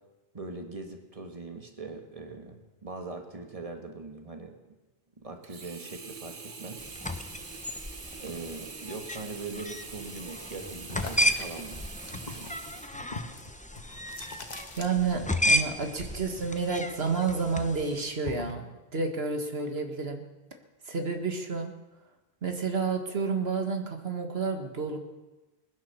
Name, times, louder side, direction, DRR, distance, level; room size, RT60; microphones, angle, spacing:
voice 1, 0.3-4.6 5.2-6.9 8.2-11.8 12.2-12.6, right 3 dB, 35° right, 4 dB, 1.7 m, -41 dB
Sink (filling or washing), 5.4-13.7 14.2-14.3, right 5 dB, 55° right, 1.3 m, -45 dB
sound 1, 6.8-18.1, left 1 dB, 10° left, 0.7 m, -33 dB
sound 2, 10.9-15.4 15.7-17.3 17.6-18.6, left 3 dB, 45° left, 1.4 m, -42 dB
voice 2, 14.8-20.2 20.9-21.7 22.4-25.0, right 4 dB, 70° right, 5 dB, 1.9 m, -30 dB
19.5 x 10.5 x 6.9 m, 1.1 s
omnidirectional pair, 1.1 m